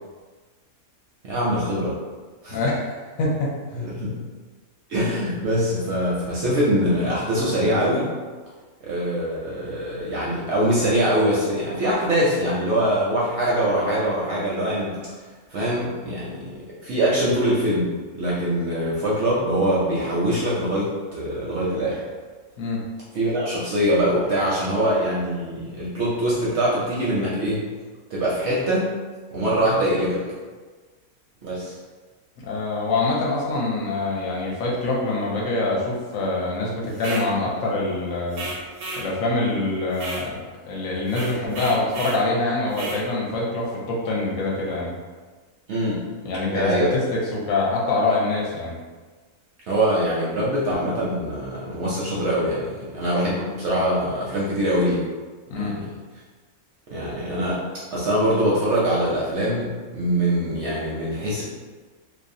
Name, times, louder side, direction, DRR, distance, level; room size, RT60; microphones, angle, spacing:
voice 1, 1.2-1.9 2.4-2.6 3.7-4.1 4.9-8.1 8.8-15.0 15.5-16.5 16.8-22.0 23.1-27.6 28.1-28.9 29.3-30.2 31.4-31.8 45.7-46.0 46.5-46.9 49.7-55.0 55.5-55.9 56.9-57.6 57.9-61.4, equal, 65° right, -7 dB, 0.7 m, -23 dB
voice 2, 2.5-3.5 22.6-22.8 32.4-38.5 39.0-40.4 40.6-44.9 46.2-48.7 55.5-55.7, left 2 dB, 75° left, -3 dB, 1.0 m, -25 dB
sound 1, 36.9-37.3 38.3-39.1 39.9-40.3 41.1-42.2 42.7-43.0, right 2 dB, 85° right, 1.1 m, -33 dB
2.6 x 2.0 x 2.6 m, 1.4 s
omnidirectional pair, 1.5 m